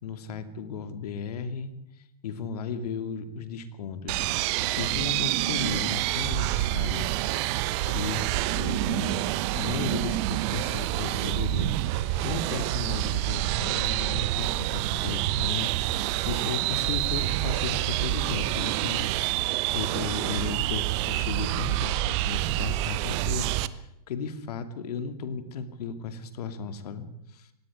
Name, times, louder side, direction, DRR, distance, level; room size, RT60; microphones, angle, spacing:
voice 1, 0.0-1.7 2.2-4.2 4.8-7.1 7.9-8.2 8.5-11.7 12.2-19.1 19.3-27.1 27.3-27.5, left 5 dB, 70° left, 10 dB, 2.7 m, -35 dB
sound 1, 4.1-23.7, right 16 dB, 45° right, 1.0 m, -27 dB
18.0 x 16.0 x 9.7 m, 0.80 s
hypercardioid pair, 135°, 20 cm